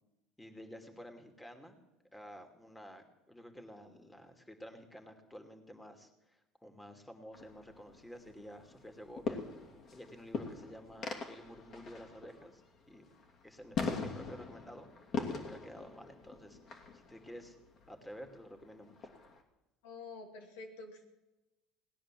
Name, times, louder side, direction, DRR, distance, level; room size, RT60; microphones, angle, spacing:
voice 1, 0.4-1.8 2.1-9.4 9.9-12.6 12.9-13.1 13.4-16.6 16.9-17.6 17.9-19.1, equal, 10° left, 5 dB, 2.6 m, -51 dB
sound 1, 7.3-19.4, left 4 dB, 45° left, 2.7 m, -43 dB
voice 2, 19.8-21.1, left 3 dB, 80° left, 2 dB, 2.9 m, -48 dB
18.0 x 10.0 x 7.6 m, 1.0 s
supercardioid pair, 85°, 0 cm